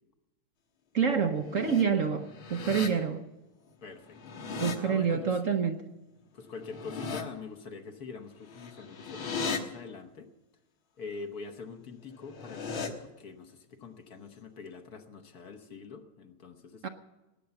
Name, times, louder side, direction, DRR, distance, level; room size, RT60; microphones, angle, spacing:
voice 1, 0.9-3.3 4.6-5.8 16.8-16.9, right 6 dB, 60° right, 0.9 m, -27 dB
sound 1, 1.2-1.8 2.3-2.9 4.0-4.8 6.6-7.2 8.5-9.6 12.1-12.9, left 5 dB, 75° left, 2.2 m, -37 dB
voice 2, 3.8-4.2 4.4-5.5 6.3-10.3 11.0-16.9, left 5 dB, 50° left, 1.6 m, -44 dB
19.0 x 9.4 x 7.0 m
omnidirectional pair, 2.3 m